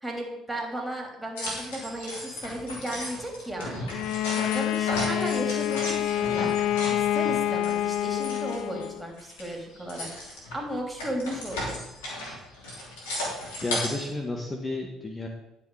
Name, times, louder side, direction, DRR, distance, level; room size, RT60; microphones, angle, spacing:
voice 1, 0.0-3.8 4.4-6.6 6.9-10.1 10.5-11.8, right 1 dB, 10° right, 1 dB, 3.2 m, -35 dB
sound 1, 1.4-8.9 9.2-14.0, left 1 dB, 80° left, 3.0 m, -35 dB
Bowed string instrument, 3.9-9.0, left 11 dB, 65° left, 0.4 m, -27 dB
voice 2, 13.6-15.3, left 2 dB, 20° left, 1 dB, 1.5 m, -31 dB
11.0 x 6.8 x 4.9 m, 0.92 s
hypercardioid pair, 55°, 0 cm